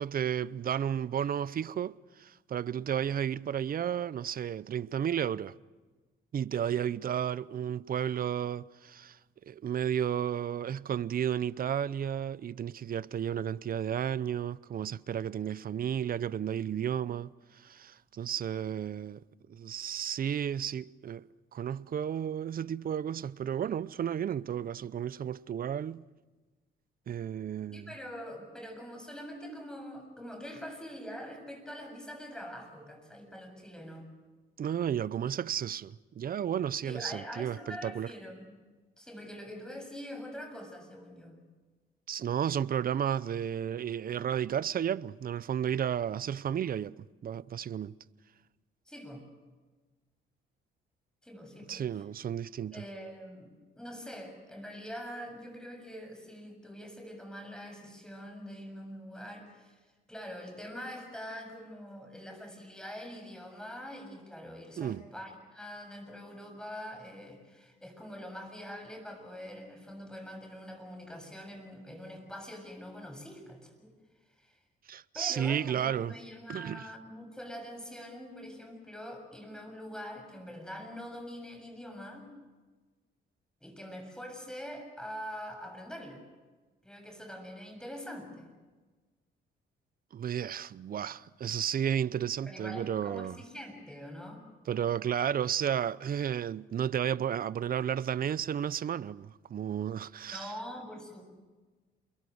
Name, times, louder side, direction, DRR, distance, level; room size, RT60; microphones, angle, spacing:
voice 1, 0.0-5.5 6.3-9.2 9.5-19.2 19.5-26.1 27.1-27.9 34.6-38.1 42.1-47.9 51.7-52.9 64.8-65.0 74.9-76.2 76.5-76.9 90.1-93.4 94.7-100.5, right 9 dB, 45° right, 0.7 m, -33 dB
voice 2, 27.7-34.1 36.8-38.6 39.0-41.4 48.9-49.2 51.2-51.8 52.7-53.5 53.8-59.8 60.1-73.9 74.4-74.6 75.1-82.3 83.6-86.2 86.8-88.5 92.5-94.5 100.3-101.2, equal, 5° left, 7.1 m, -44 dB
28.5 x 22.5 x 6.4 m
cardioid pair, 90°, 20 cm